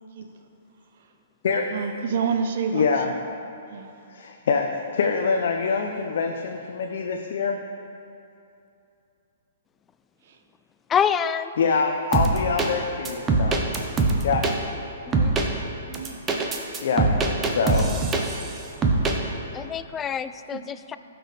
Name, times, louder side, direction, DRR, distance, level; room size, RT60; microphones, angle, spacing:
voice 1, 1.7-3.2 3.7-3.9 10.3-10.4 15.9-16.2 17.0-17.1 19.5-19.6 20.5-20.6, right 6 dB, 60° right, 6 dB, 0.7 m, -29 dB
voice 2, 2.7-3.1 4.1-7.6 11.6-13.6 14.2-14.5 16.8-17.1 17.4-18.0, left 5 dB, 65° left, 3 dB, 0.6 m, -25 dB
voice 3, 10.9-11.5 15.0-15.3 19.5-21.0, left 8 dB, 20° left, 12 dB, 0.3 m, -26 dB
sound 1, 12.1-12.7 13.0-14.5 15.1-15.5 15.9-18.5 18.8-19.1, right 3 dB, 20° right, 0.9 m, -22 dB
14.0 x 6.1 x 3.4 m, 2.7 s
hypercardioid pair, 135°, 0 cm